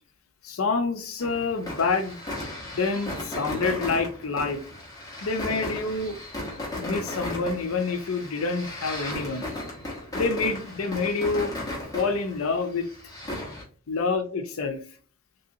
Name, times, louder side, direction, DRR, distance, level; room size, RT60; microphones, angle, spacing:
voice 1, 0.4-2.2 2.7-4.6 5.2-6.2 6.8-9.5 10.1-11.6 11.9-12.9 13.9-14.8, left 4 dB, 75° left, 0.6 m, -27 dB
sound 1, 1.2-13.6, left 1 dB, 15° left, 1.1 m, -36 dB
3.3 x 2.7 x 2.7 m
head